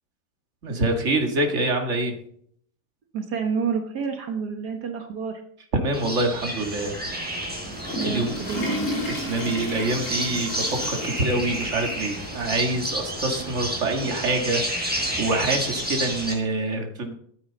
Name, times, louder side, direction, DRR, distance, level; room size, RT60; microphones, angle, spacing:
voice 1, 0.6-2.1 5.7-6.9 7.9-8.3 9.1-17.1, right 2 dB, 45° right, 3 dB, 2.2 m, -26 dB
voice 2, 3.1-5.4 8.0-8.8, right 6 dB, 75° right, 4 dB, 2.0 m, -29 dB
sound 1, 5.9-16.3, equal, 5° right, 4.2 m, -30 dB
Water / Toilet flush, 7.5-12.5 12.8-12.9 13.6-13.7 15.0-15.1, left 1 dB, 50° left, 3.3 m, -33 dB
15.0 x 9.2 x 4.0 m, 0.64 s
omnidirectional pair, 1.7 m